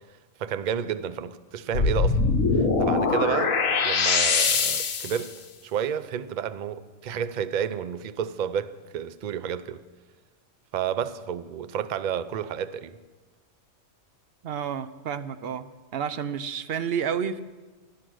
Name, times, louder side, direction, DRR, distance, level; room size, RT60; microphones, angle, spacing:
voice 1, 0.4-2.2 2.5-5.4 5.6-9.8 10.7-13.0, right 8 dB, 90° right, 0.4 m, -31 dB
sound 1, 1.7-5.3, left 4 dB, 75° left, 1.4 m, -23 dB
voice 2, 14.4-15.7 15.9-17.4, right 7 dB, 60° right, 0.7 m, -30 dB
14.0 x 11.5 x 6.2 m
omnidirectional pair, 1.4 m